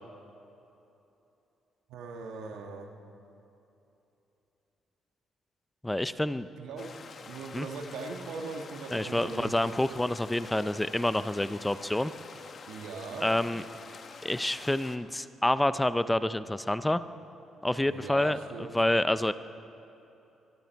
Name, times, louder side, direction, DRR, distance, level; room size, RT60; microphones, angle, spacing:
voice 1, 1.9-2.9 6.6-6.9 7.2-9.7 12.7-13.3 17.8-18.7, right 4 dB, 90° right, 3 dB, 1.5 m, -40 dB
voice 2, 5.8-6.5 7.5-7.7 8.9-12.1 13.2-13.6 14.2-17.0 17.6-19.3, left 1 dB, 10° left, 13 dB, 0.5 m, -28 dB
sound 1, 6.8-15.0, left 5 dB, 45° left, 1.0 m, -47 dB
24.0 x 12.0 x 4.6 m, 3.0 s
cardioid pair, 90°, 0 cm